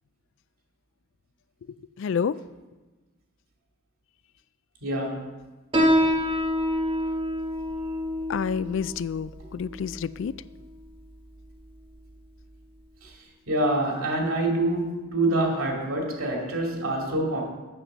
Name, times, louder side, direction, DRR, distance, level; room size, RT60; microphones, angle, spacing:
voice 1, 2.0-2.4 8.3-10.3, left 6 dB, 60° left, 17 dB, 0.3 m, -28 dB
voice 2, 4.8-5.3 13.0-13.1 13.5-17.4, right 1 dB, 85° right, 0 dB, 2.4 m, -26 dB
Piano, 5.7-12.8, equal, 25° right, 1.3 m, -28 dB
8.6 x 7.0 x 6.6 m, 1.2 s
head